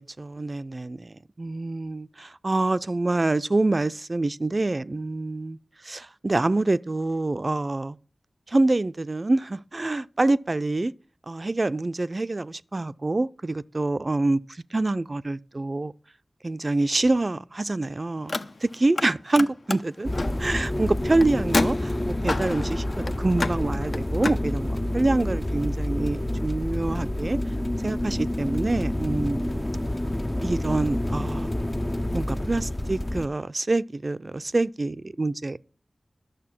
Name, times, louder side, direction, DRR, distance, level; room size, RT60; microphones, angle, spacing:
voice 1, 0.0-5.6 5.8-8.0 8.5-10.9 11.3-14.4 14.7-15.9 16.4-18.3 18.6-20.1 20.4-27.4 27.8-29.7 30.4-31.5 32.1-35.6, right 2 dB, 45° right, 0.4 m, -26 dB
Car, 18.2-19.1 19.3-24.4, left 2 dB, 60° left, 0.6 m, -30 dB
sound 1, 20.0-33.3, left 1 dB, 20° left, 0.4 m, -28 dB
11.0 x 6.7 x 5.9 m
wide cardioid pair, 65°, 0 cm